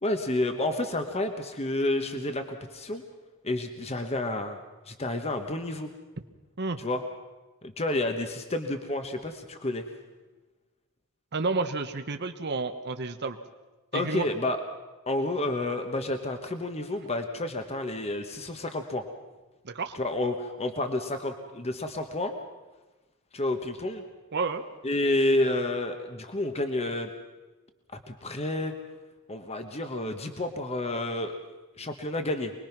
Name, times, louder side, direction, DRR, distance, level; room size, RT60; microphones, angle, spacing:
voice 1, 0.0-3.0 3.4-4.6 4.9-5.9 6.8-7.0 7.6-9.8 13.9-14.6 15.1-19.0 19.9-22.3 23.3-24.0 24.8-27.1 28.1-28.7 29.3-31.4 31.8-32.5, left 2 dB, 30° left, 6 dB, 1.2 m, -30 dB
voice 2, 11.3-13.4 13.9-14.3 19.6-20.0 24.3-24.6, right 3 dB, 50° right, 6 dB, 1.0 m, -30 dB
25.0 x 20.5 x 6.0 m, 1.2 s
head